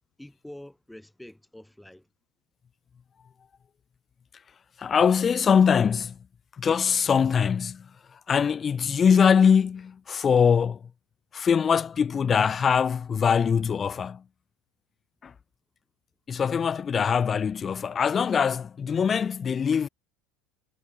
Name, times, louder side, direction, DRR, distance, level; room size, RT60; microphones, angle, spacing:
voice 1, 0.2-2.1 16.3-16.4, left 1 dB, 5° left, 2.1 m, -46 dB
voice 2, 4.8-6.2 6.6-10.8 11.3-14.2 15.2-15.3 16.3-19.9, left 7 dB, 30° left, 0.8 m, -23 dB
hypercardioid pair, 95°, 0 cm